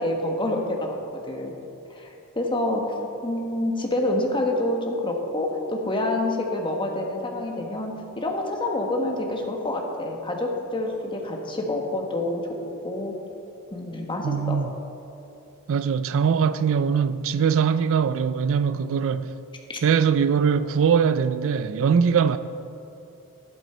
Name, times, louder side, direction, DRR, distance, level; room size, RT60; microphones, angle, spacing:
voice 1, 0.0-1.5 1.9-2.9 3.2-12.6 12.8-13.2 13.7-14.6 19.7-19.8, left 1 dB, 20° left, 1.4 m, -27 dB
voice 2, 14.2-14.7 15.7-19.3 19.8-22.4, right 6 dB, 60° right, 0.4 m, -21 dB
12.0 x 11.0 x 4.4 m
head